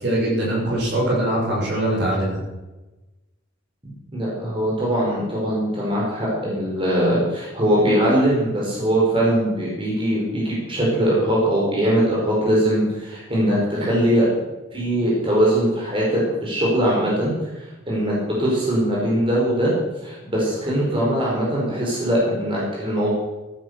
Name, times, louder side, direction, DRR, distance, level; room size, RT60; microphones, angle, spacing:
voice 1, 0.0-2.4, right 1 dB, 55° right, -5 dB, 6.9 m, -22 dB
voice 2, 4.1-14.2 14.7-19.7 20.0-23.1, equal, 25° right, -5 dB, 5.3 m, -21 dB
15.0 x 11.0 x 6.9 m, 1.1 s
head